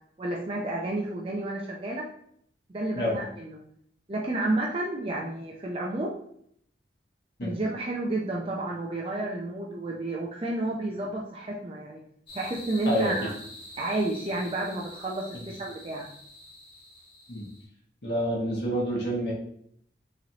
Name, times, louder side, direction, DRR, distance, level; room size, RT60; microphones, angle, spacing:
voice 1, 0.2-2.1 2.7-3.6 4.1-6.2 7.4-12.0 12.3-13.3 13.8-16.1, right 2 dB, 30° right, -3 dB, 0.5 m, -31 dB
sound 1, 12.3-17.6, left 1 dB, 30° left, 1.4 m, -46 dB
voice 2, 12.9-13.3 15.3-15.5 17.3-17.4 18.0-19.3, equal, 65° left, -4 dB, 1.0 m, -28 dB
4.0 x 3.1 x 2.9 m, 0.68 s
head